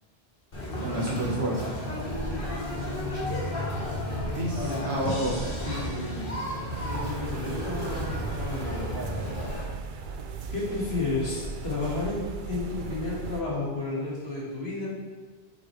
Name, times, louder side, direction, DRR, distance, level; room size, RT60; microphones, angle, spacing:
Conversation, 0.5-9.6, left 1 dB, 60° left, 1.7 m, -33 dB
voice 1, 0.8-1.8 4.3-5.5, right 1 dB, 80° right, -2 dB, 1.7 m, -30 dB
sound 1, 5.0-8.2, left 2 dB, 40° left, 1.4 m, -41 dB
voice 2, 5.7-6.4 6.8-9.3 10.5-14.9, left 3 dB, 75° left, -5 dB, 2.1 m, -32 dB
sound 2, 6.7-13.4, right 5 dB, 60° right, 0.7 m, -37 dB
7.9 x 6.0 x 3.2 m, 1.4 s
omnidirectional pair, 1.1 m